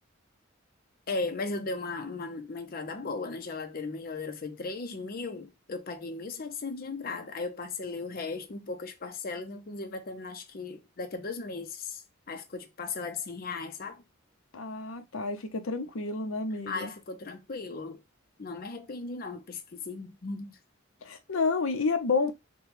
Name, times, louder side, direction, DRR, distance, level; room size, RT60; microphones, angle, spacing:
voice 1, 1.1-14.0 16.7-18.0 18.4-20.6, left 3 dB, 45° left, 0.6 m, -37 dB
voice 2, 14.5-16.9 21.0-22.3, left 4 dB, 90° left, 0.7 m, -30 dB
6.0 x 2.3 x 3.2 m
head